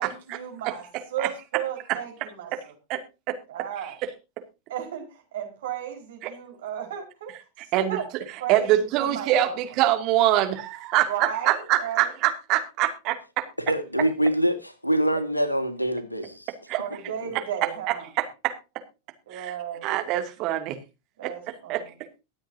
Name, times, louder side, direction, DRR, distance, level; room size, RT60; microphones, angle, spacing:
voice 1, 0.0-2.7 3.5-4.0 4.7-7.3 7.7-8.0 8.4-9.5 10.9-12.1 16.7-18.1 19.3-19.9 21.2-21.9, right 9 dB, 60° right, 4.7 m, -34 dB
voice 2, 8.5-11.1 11.5-13.4 16.7-16.8 18.4-18.5 19.3-19.5 19.8-20.8 21.2-21.3 21.7-21.8, right 13 dB, 40° right, 2.4 m, -24 dB
voice 3, 13.7-16.5 17.2-17.3, right 1 dB, 85° left, 1.9 m, -25 dB
23.0 x 7.9 x 2.7 m
figure-of-eight pair, 90°, 0 cm